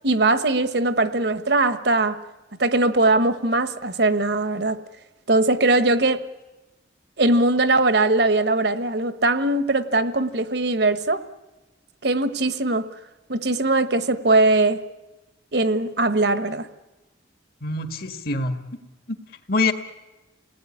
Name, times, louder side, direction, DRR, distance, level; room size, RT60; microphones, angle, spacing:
voice 1, 0.0-2.2 2.6-4.8 5.3-6.2 7.2-11.2 12.0-12.9 13.3-14.8 15.5-16.7, right 2 dB, 55° right, 11 dB, 1.2 m, -20 dB
voice 2, 17.6-18.6 19.1-19.2 19.5-19.7, left 3 dB, 50° left, 7 dB, 1.8 m, -24 dB
29.0 x 18.5 x 9.9 m, 1.1 s
head